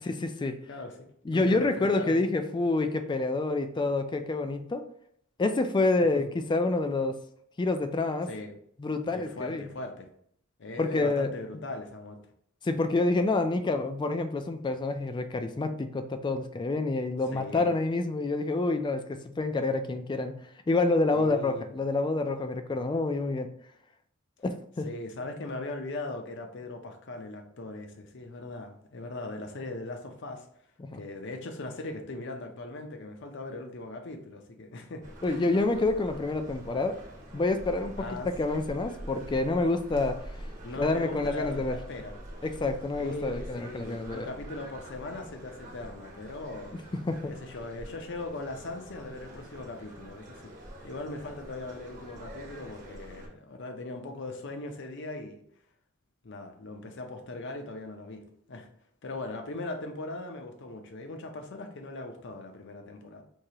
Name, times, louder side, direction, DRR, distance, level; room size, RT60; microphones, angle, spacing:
voice 1, 0.0-0.6 1.3-4.8 5.4-7.2 7.6-8.3 8.8-9.6 10.8-11.3 12.6-20.4 20.7-23.5 24.4-24.9 30.8-31.0 35.2-37.0 37.3-40.2 40.8-41.8 42.4-44.3 47.1-47.3, left 2 dB, 25° left, 8 dB, 0.3 m, -28 dB
voice 2, 0.7-2.2 6.1-6.2 8.3-8.5 9.1-10.1 10.6-12.2 17.3-17.8 21.1-21.7 24.8-30.5 30.9-35.4 38.0-38.3 40.6-42.1 43.0-46.8 47.3-50.5 50.8-55.4 56.2-58.2 58.5-58.7 59.0-63.2, left 2 dB, 60° left, 5 dB, 0.6 m, -39 dB
sound 1, 35.0-53.3, right 1 dB, 40° right, 1.0 m, -45 dB
4.6 x 2.8 x 2.8 m, 0.67 s
head